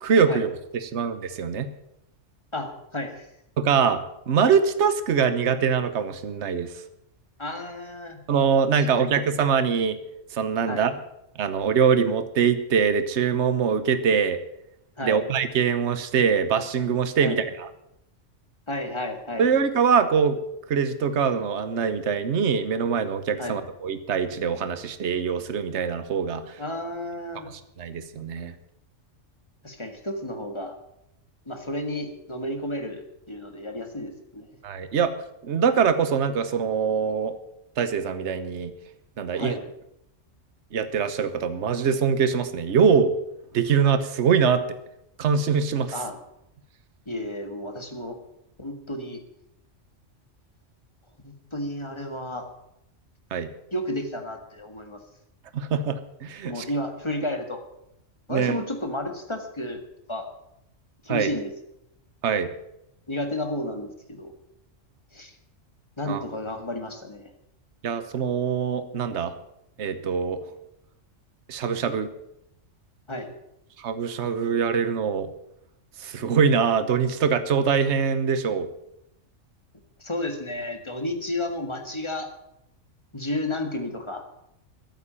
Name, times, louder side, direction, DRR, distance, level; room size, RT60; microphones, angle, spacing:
voice 1, 0.0-1.7 3.6-6.7 8.3-10.0 10.3-10.9 11.4-14.4 15.0-17.7 19.4-20.4 20.7-26.6 27.8-28.5 34.6-35.1 35.4-37.3 37.8-38.7 39.2-39.6 40.7-43.1 43.5-44.6 45.2-45.9 53.3-53.5 55.5-56.7 58.3-58.6 61.1-61.3 62.2-62.5 66.1-66.2 67.8-69.3 69.8-70.4 71.5-72.1 73.8-75.3 76.0-78.7, right 6 dB, 65° right, 11 dB, 1.3 m, -23 dB
voice 2, 2.5-3.3 7.4-8.2 8.9-9.1 10.6-10.9 15.0-15.2 17.2-17.4 18.7-19.4 23.4-23.6 26.6-27.5 29.6-30.7 31.5-34.5 39.3-39.6 45.9-46.2 47.1-48.2 48.6-49.2 51.2-52.5 53.7-55.0 56.4-57.6 58.3-59.8 60.1-60.3 61.1-61.5 63.1-64.3 65.1-65.3 66.0-67.3 73.1-73.3 80.0-82.3 83.1-84.2, left 1 dB, 25° left, 5 dB, 1.8 m, -32 dB
14.0 x 8.4 x 8.9 m, 0.82 s
omnidirectional pair, 1.3 m